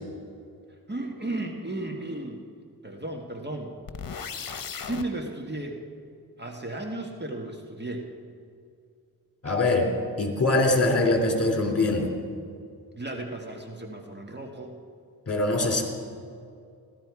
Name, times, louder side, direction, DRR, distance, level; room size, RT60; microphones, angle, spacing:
voice 1, 0.9-2.4 2.8-3.7 4.7-5.8 6.4-8.1 12.9-14.7, right 2 dB, 25° right, 2 dB, 1.5 m, -34 dB
sound 1, 3.9-5.1, left 6 dB, 60° left, 1.0 m, -36 dB
voice 2, 9.4-9.9 10.2-12.1 15.3-15.8, left 2 dB, 40° left, 2 dB, 2.9 m, -23 dB
15.5 x 12.5 x 4.8 m, 2.4 s
cardioid pair, 60°, 38 cm